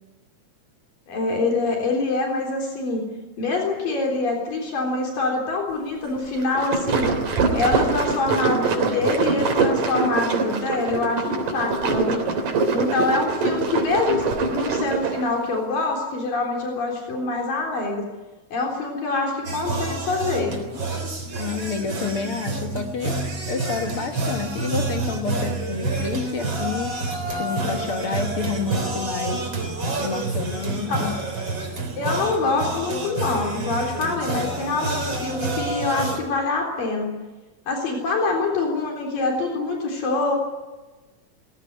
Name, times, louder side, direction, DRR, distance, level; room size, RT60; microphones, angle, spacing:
voice 1, 1.1-3.0 3.4-7.1 7.5-12.2 12.7-18.1 18.5-20.6 30.9-31.0 32.0-37.1 37.7-40.4, left 3 dB, 80° left, 1 dB, 5.4 m, -25 dB
sound 1, 6.4-15.3, right 4 dB, 70° right, 4.9 m, -23 dB
sound 2, 19.4-36.2, right 2 dB, 35° right, 4.4 m, -28 dB
voice 2, 21.4-26.9 27.4-29.5 30.0-31.2, left 5 dB, 50° left, 4 dB, 2.1 m, -29 dB
22.0 x 16.5 x 9.5 m, 1.2 s
omnidirectional pair, 3.9 m